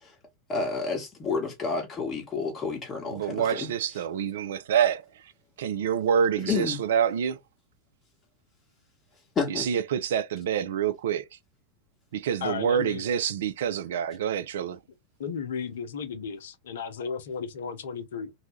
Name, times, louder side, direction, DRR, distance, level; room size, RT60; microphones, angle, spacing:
voice 1, 0.5-3.7 6.5-6.8 9.4-9.7, left 4 dB, 20° left, 0.9 m, -30 dB
voice 2, 3.1-5.0 5.6-7.4 9.5-11.2 12.1-14.8, right 8 dB, 60° right, 0.3 m, -27 dB
voice 3, 12.4-13.1 15.2-18.3, left 6 dB, 60° left, 0.5 m, -34 dB
2.6 x 2.2 x 3.0 m
figure-of-eight pair, 90°, 0 cm